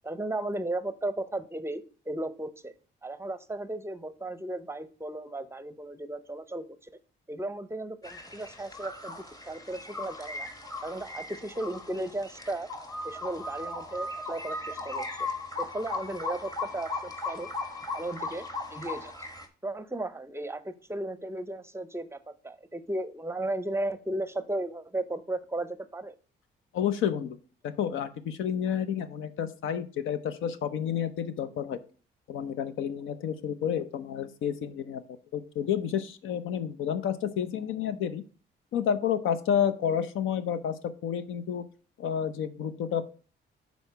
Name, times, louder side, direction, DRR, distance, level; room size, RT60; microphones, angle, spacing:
voice 1, 0.0-2.7 3.0-6.9 7.3-9.2 9.5-10.5 10.8-12.7 13.0-15.1 15.6-17.5 17.9-18.4 18.7-19.1 19.6-22.2 22.4-26.2, right 1 dB, 15° right, 13 dB, 0.6 m, -35 dB
sound 1, 8.0-19.5, left 2 dB, 20° left, 1.2 m, -37 dB
voice 2, 26.7-27.4 27.6-31.8 32.3-35.0 35.3-38.2 38.7-41.6 42.0-43.0, left 8 dB, 80° left, 13 dB, 0.7 m, -30 dB
6.3 x 4.1 x 5.7 m, 0.38 s
cardioid pair, 90°, 20 cm